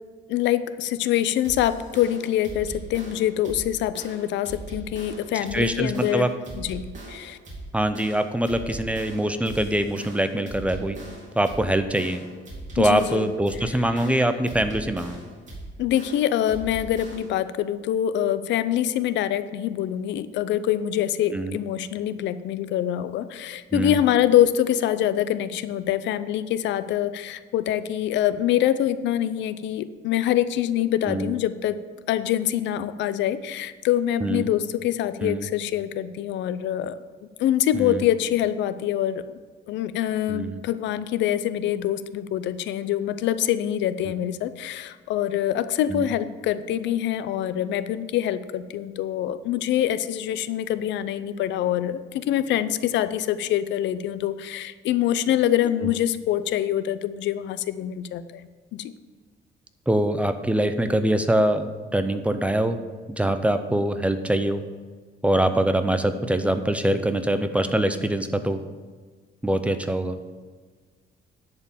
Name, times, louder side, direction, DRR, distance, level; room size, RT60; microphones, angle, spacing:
voice 1, 0.3-6.3 6.5-7.4 12.8-13.3 13.6-14.0 15.8-31.8 32.1-37.0 37.4-39.4 39.7-58.9, left 11 dB, 90° left, 14 dB, 0.5 m, -25 dB
sound 1, 1.4-17.4, right 2 dB, 45° right, 2.6 m, -40 dB
voice 2, 5.5-6.3 7.7-11.0 11.4-12.2 12.8-15.2 21.3-21.6 23.7-24.0 31.1-31.3 34.2-34.5 35.2-35.5 37.7-38.0 40.3-40.6 45.9-46.1 59.9-62.8 63.1-64.6 65.2-68.6 69.4-70.2, right 1 dB, 5° right, 9 dB, 0.5 m, -23 dB
10.5 x 4.5 x 7.2 m, 1.5 s
cardioid pair, 145°, 18 cm